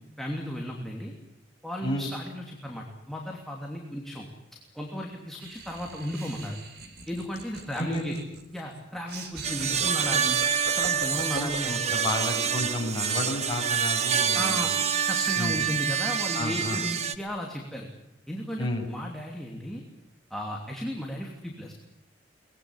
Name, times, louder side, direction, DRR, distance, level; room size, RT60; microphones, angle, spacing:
voice 1, 0.2-1.1 1.6-4.3 4.7-6.6 7.1-8.1 8.5-10.4 10.7-11.8 14.3-14.7 15.1-17.9 18.3-19.8 20.3-21.7, equal, ahead, -1 dB, 3.0 m, -35 dB
Laughter, 5.4-13.0, right 3 dB, 60° right, 4.1 m, -41 dB
voice 2, 7.7-8.2 11.3-14.8 15.4-15.6 16.3-16.8 18.6-18.9, left 1 dB, 25° left, -1 dB, 7.4 m, -31 dB
sound 1, 9.4-17.1, right 8 dB, 35° right, 1.2 m, -27 dB
23.5 x 20.5 x 10.0 m, 0.86 s
head